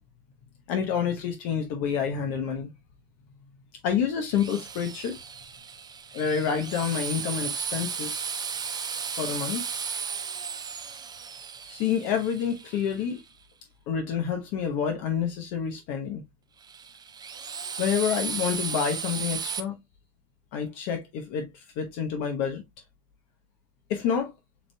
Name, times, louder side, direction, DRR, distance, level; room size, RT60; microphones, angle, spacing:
voice 1, 0.7-2.7 3.8-5.2 6.1-8.2 9.2-9.6 11.7-13.2 13.9-16.2 17.8-19.8 20.5-22.6 23.9-24.3, left 7 dB, 55° left, 1.1 m, -28 dB
Drill, 4.3-13.2 16.6-19.6, right 6 dB, 10° right, 0.3 m, -35 dB
7.3 x 3.0 x 2.2 m
supercardioid pair, 120°, 41 cm